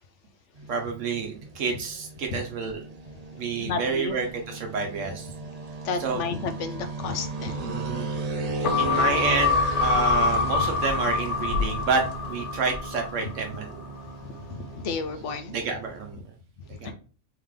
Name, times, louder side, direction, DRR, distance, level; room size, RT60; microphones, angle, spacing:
sound 1, 0.6-16.1, right 2 dB, 45° right, 0.6 m, -35 dB
voice 1, 0.7-2.8 3.3-5.3 6.0-6.2 7.6-8.1 8.8-13.8 15.5-16.2 16.8-16.9, right 4 dB, 80° right, 1.2 m, -29 dB
voice 2, 3.6-4.2 5.8-7.7 14.5-15.5 16.8-16.9, left 4 dB, 75° left, 1.0 m, -32 dB
sound 2, 8.6-13.3 13.7-13.8, left 5 dB, 55° left, 0.6 m, -25 dB
3.5 x 3.3 x 3.6 m
omnidirectional pair, 1.3 m